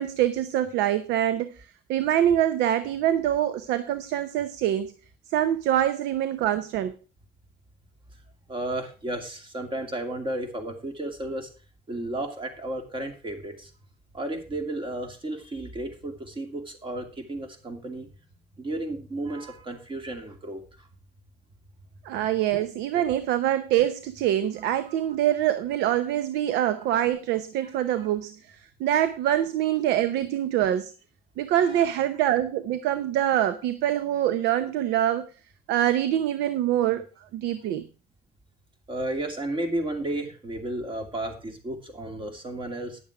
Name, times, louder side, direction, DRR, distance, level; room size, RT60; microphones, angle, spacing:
voice 1, 0.0-4.9 5.3-7.0 22.0-28.4 28.8-30.9 31.4-35.3 35.7-37.1 37.3-37.8, right 11 dB, 90° right, 12 dB, 0.7 m, -25 dB
voice 2, 8.5-11.5 11.9-13.7 14.1-18.1 18.6-20.9 24.6-24.8 28.0-28.1 31.6-32.0 38.9-43.0, right 1 dB, 30° right, 5 dB, 2.5 m, -33 dB
10.5 x 7.3 x 4.9 m, 0.35 s
cardioid pair, 110°, 17 cm